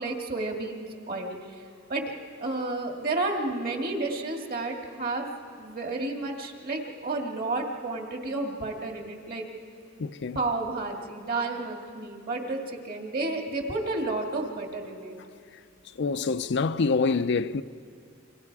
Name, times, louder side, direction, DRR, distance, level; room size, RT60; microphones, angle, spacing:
voice 1, 0.0-1.4 1.9-2.0 2.4-5.3 5.6-9.5 10.3-15.2, right 2 dB, 50° right, 2.2 m, -31 dB
voice 2, 10.0-10.4 16.0-17.6, left 4 dB, 60° left, 0.5 m, -26 dB
27.5 x 24.5 x 4.8 m
head